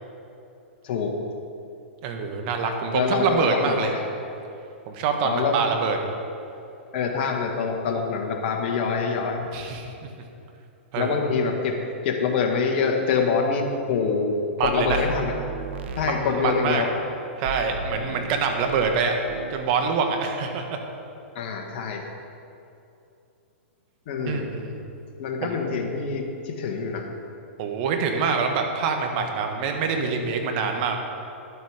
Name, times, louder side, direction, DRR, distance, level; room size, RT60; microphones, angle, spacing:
voice 1, 0.8-1.2 2.9-4.0 5.2-5.7 6.9-9.5 10.9-14.3 14.6-15.3 16.0-16.9 21.3-22.1 24.1-24.5 25.2-27.1, left 5 dB, 50° left, 2 dB, 1.6 m, -25 dB
voice 2, 2.0-3.9 4.9-6.0 9.5-10.1 10.9-11.2 14.6-15.0 16.0-16.8 17.4-19.2 19.5-20.8 24.3-24.8 25.4-25.6 27.6-31.0, right 5 dB, 45° right, 4 dB, 1.3 m, -25 dB
sound 1, 14.6-16.8 17.5-19.0 19.3-19.6, right 4 dB, 65° right, 0.9 m, -35 dB
11.0 x 8.0 x 4.9 m, 2.7 s
hypercardioid pair, 120°, 7 cm